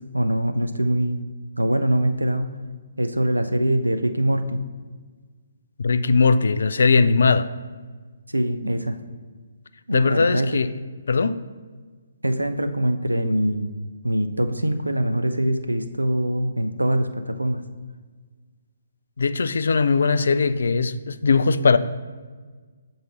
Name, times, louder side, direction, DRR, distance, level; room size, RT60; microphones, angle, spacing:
voice 1, 0.1-1.2 1.6-2.5 3.0-4.6 8.3-9.0 9.9-10.6 12.2-13.7 14.0-17.6, right 1 dB, 80° right, 0.5 m, -23 dB
voice 2, 5.8-7.5 9.9-10.7 11.1-11.4 19.2-21.8, left 4 dB, 55° left, 0.3 m, -19 dB
6.6 x 3.9 x 4.0 m
figure-of-eight pair, 135°, 0 cm